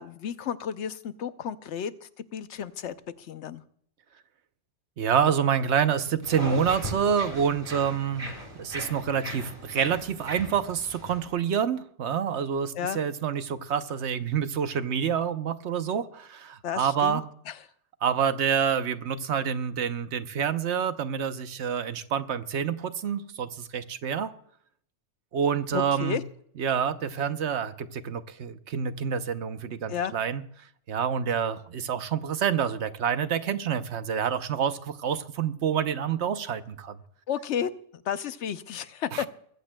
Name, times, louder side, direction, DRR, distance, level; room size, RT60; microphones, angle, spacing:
voice 1, 0.0-3.6 12.7-13.0 16.6-17.2 17.5-17.6 25.7-26.2 29.9-30.1 37.3-39.3, left 8 dB, 75° left, 12 dB, 1.0 m, -32 dB
voice 2, 5.0-17.2 18.0-24.3 25.3-26.2 26.6-30.4 30.9-37.0 39.1-39.3, right 7 dB, 70° right, 11 dB, 1.1 m, -27 dB
sound 1, 6.2-11.3, right 1 dB, 30° right, 3.3 m, -38 dB
21.5 x 15.0 x 2.2 m, 0.64 s
omnidirectional pair, 1.2 m